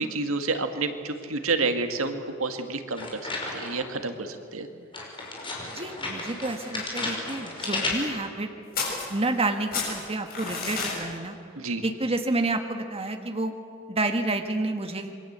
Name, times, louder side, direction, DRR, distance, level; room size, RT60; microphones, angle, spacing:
voice 1, 0.0-3.2 3.5-4.7 11.6-11.8, right 3 dB, 75° right, 6 dB, 2.0 m, -29 dB
sound 1, 3.0-3.9 4.9-8.3, left 2 dB, 25° left, 5.7 m, -33 dB
voice 2, 5.7-8.5 9.1-11.4 11.8-13.5 13.9-15.1, right 2 dB, 30° right, 5 dB, 1.6 m, -29 dB
sound 2, 8.7-9.5 9.7-11.0, left 4 dB, 45° left, 7.6 m, -31 dB
27.5 x 23.5 x 8.1 m, 2.4 s
head